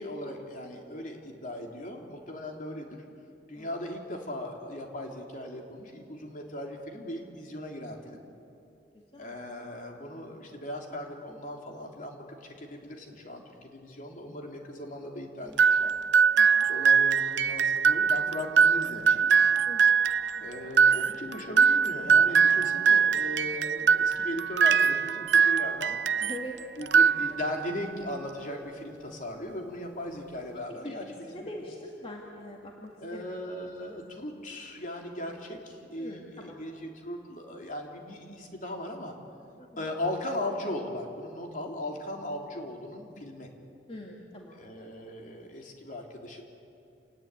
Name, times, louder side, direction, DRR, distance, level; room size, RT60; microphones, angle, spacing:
voice 1, 0.0-3.0 3.5-8.2 9.2-15.9 16.7-19.3 20.4-26.0 26.8-31.5 33.0-39.1 39.8-43.5 44.5-46.4, left 1 dB, 50° left, 1 dB, 3.3 m, -38 dB
sound 1, 15.6-26.4 26.8-27.7, right 6 dB, 70° right, 0.5 m, -23 dB
voice 2, 16.4-16.7 19.7-20.0 26.2-26.6 27.3-27.4 30.8-33.4 35.3-35.4 35.9-36.5 39.6-39.9 43.9-44.9, left 1 dB, 30° left, -1 dB, 2.3 m, -43 dB
28.0 x 19.5 x 9.1 m, 2.6 s
head